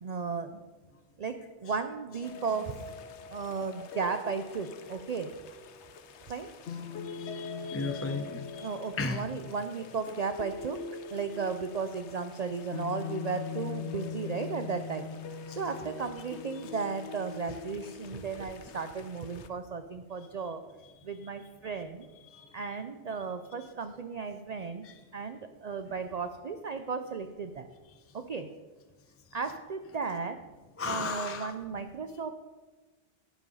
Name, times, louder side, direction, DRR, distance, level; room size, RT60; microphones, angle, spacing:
voice 1, 0.0-0.6 1.2-1.3 1.6-2.8 3.3-5.3 6.3-6.5 8.6-10.8 11.1-15.1 15.5-20.6 21.0-22.1 22.5-24.9 25.1-27.7 28.1-28.5 29.3-30.4 30.8-32.3, right 5 dB, 45° right, 8 dB, 0.6 m, -35 dB
sound 1, 2.2-19.5, left 6 dB, 75° left, 1.1 m, -42 dB
voice 2, 7.0-8.7 9.0-9.2 22.3-22.5 24.8-24.9 30.8-31.5, left 3 dB, 15° left, 6 dB, 0.7 m, -35 dB
12.0 x 9.2 x 5.5 m, 1.3 s
omnidirectional pair, 1.2 m